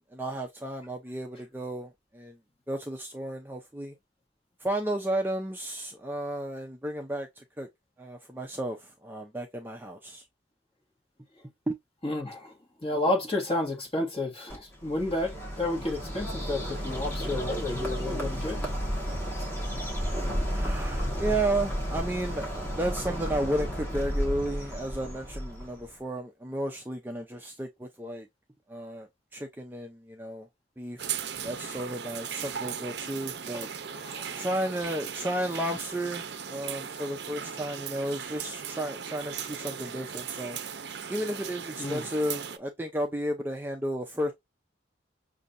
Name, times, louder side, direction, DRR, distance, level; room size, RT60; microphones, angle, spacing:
voice 1, 0.0-2.4 2.7-3.9 4.6-7.7 8.0-10.2 11.7-11.8 20.5-28.3 28.7-30.5 30.8-33.7 34.4-40.6 41.1-44.3, right 1 dB, 10° right, 0.5 m, -33 dB
voice 2, 12.0-12.5 12.8-18.6 33.9-34.5 41.8-42.1, left 2 dB, 30° left, 1.8 m, -31 dB
Bird, 14.5-25.9, equal, 10° left, 1.4 m, -32 dB
sound 1, 31.0-42.6, right 7 dB, 65° right, 0.6 m, -38 dB
6.4 x 2.7 x 2.5 m
head